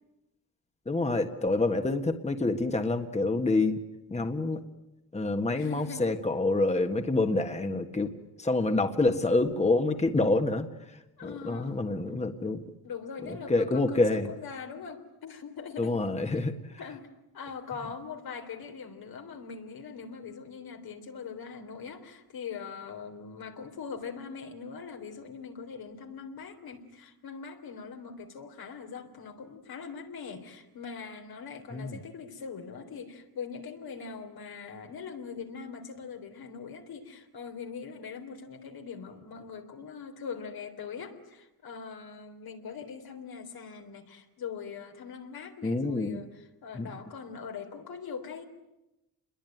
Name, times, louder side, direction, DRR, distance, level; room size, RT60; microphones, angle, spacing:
voice 1, 0.9-3.8 4.1-4.6 5.1-8.1 8.4-10.7 11.2-12.6 13.3-14.3 15.8-16.5 31.7-32.0 45.6-46.2 46.7-46.8, left 2 dB, 20° left, 6 dB, 1.6 m, -27 dB
voice 2, 5.6-6.1 11.2-11.8 12.4-12.5 12.8-16.0 16.8-17.1 17.3-48.4, left 6 dB, 75° left, 4 dB, 3.8 m, -42 dB
28.0 x 22.0 x 9.3 m, 0.94 s
cardioid pair, 105°, 37 cm